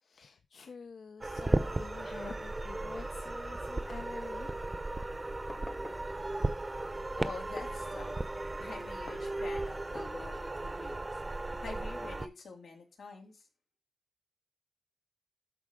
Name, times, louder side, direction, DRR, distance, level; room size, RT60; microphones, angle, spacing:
voice 1, 0.0-4.5, left 5 dB, 70° left, 0.7 m, -48 dB
sound 1, 1.2-12.3, right 2 dB, 20° right, 0.7 m, -36 dB
Fireworks, 5.3-10.6, left 2 dB, 20° left, 0.8 m, -52 dB
voice 2, 7.2-8.1 8.6-11.1 11.6-13.5, left 4 dB, 90° left, 3.0 m, -46 dB
12.5 x 4.9 x 3.7 m
wide cardioid pair, 155°, 0 cm